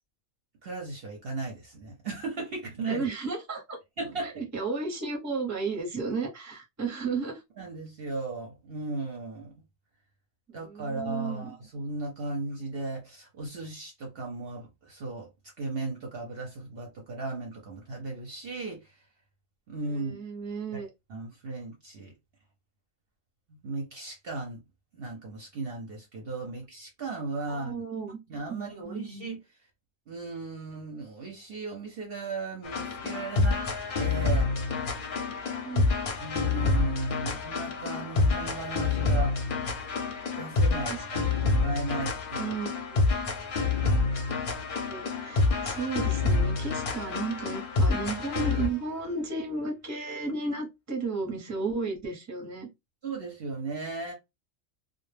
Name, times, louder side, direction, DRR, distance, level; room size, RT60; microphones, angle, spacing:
voice 1, 0.6-3.1 4.0-4.3 7.6-9.5 10.5-15.3 15.6-19.0 19.7-20.2 20.7-20.8 21.1-22.1 23.5-24.6 24.9-27.8 28.3-29.4 30.1-33.6 34.0-34.5 36.2-39.4 40.4-42.5 53.0-54.1, right 3 dB, 60° right, 0.7 m, -36 dB
voice 2, 2.9-3.8 4.2-7.4 10.5-11.5 19.9-20.9 27.4-28.2 28.5-29.3 35.6-35.9 40.9-41.4 42.4-42.8 44.3-44.5 44.9-52.7, right 4 dB, 15° right, 0.6 m, -34 dB
sound 1, 32.6-48.8, left 3 dB, 55° left, 0.6 m, -27 dB
2.1 x 2.0 x 3.1 m
omnidirectional pair, 1.3 m